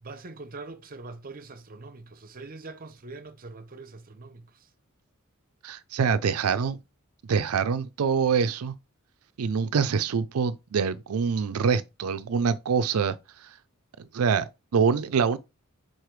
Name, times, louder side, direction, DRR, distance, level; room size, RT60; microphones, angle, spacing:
voice 1, 0.0-4.7, right 3 dB, 40° right, 0.7 m, -43 dB
voice 2, 5.6-6.8 7.3-8.7 9.4-13.2 14.1-15.4, right 6 dB, 85° right, 0.4 m, -25 dB
4.9 x 4.3 x 4.6 m
head